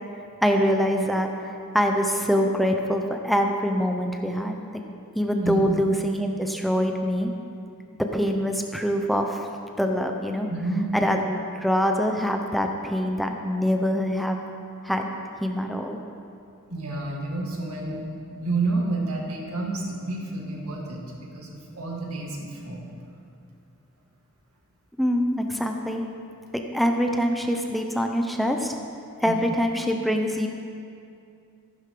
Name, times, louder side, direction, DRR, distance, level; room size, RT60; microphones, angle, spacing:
voice 1, 0.4-4.8 5.1-7.3 8.1-9.5 9.8-10.5 10.9-14.4 14.8-15.1 15.4-16.0 25.0-26.0 26.5-28.8 29.2-30.5, equal, ahead, 3 dB, 0.6 m, -24 dB
voice 2, 10.5-10.9 16.7-18.0 18.3-21.0 21.3-22.8 29.2-29.4, right 2 dB, 75° right, -1 dB, 2.1 m, -29 dB
14.0 x 11.5 x 3.8 m, 2.5 s
head